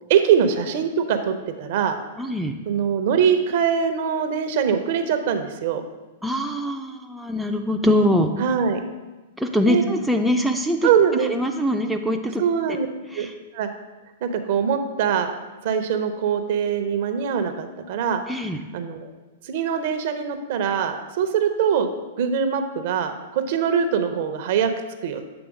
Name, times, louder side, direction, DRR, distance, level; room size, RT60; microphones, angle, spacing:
voice 1, 0.1-2.0 2.7-5.8 8.4-8.8 9.7-9.8 10.8-11.3 12.4-12.9 13.1-13.3 13.5-13.7 14.2-15.3 15.6-18.2 18.7-19.1 19.4-21.9 22.2-24.7 25.0-25.2, right 7 dB, 55° right, 8 dB, 0.6 m, -22 dB
voice 2, 2.2-2.6 6.2-8.3 9.4-10.9 11.2-12.4 12.7-12.8 13.1-13.3 18.3-18.6, equal, ahead, 3 dB, 0.4 m, -23 dB
7.0 x 3.4 x 5.0 m, 1.1 s
figure-of-eight pair, 105°, 0 cm